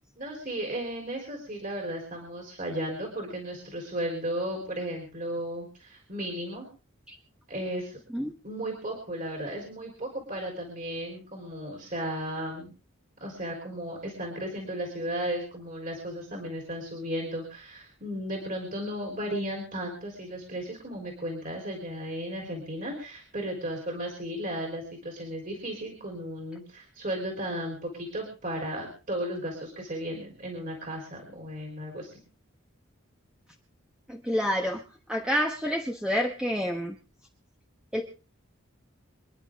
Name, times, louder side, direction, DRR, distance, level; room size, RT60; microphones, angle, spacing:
voice 1, 0.2-6.7 7.5-8.0 8.4-12.7 13.2-32.2, right 1 dB, 40° right, 1 dB, 3.9 m, -35 dB
voice 2, 34.1-34.8 35.1-37.0 37.9-38.0, equal, 5° right, 1 dB, 1.2 m, -28 dB
26.5 x 10.5 x 3.6 m, 0.37 s
head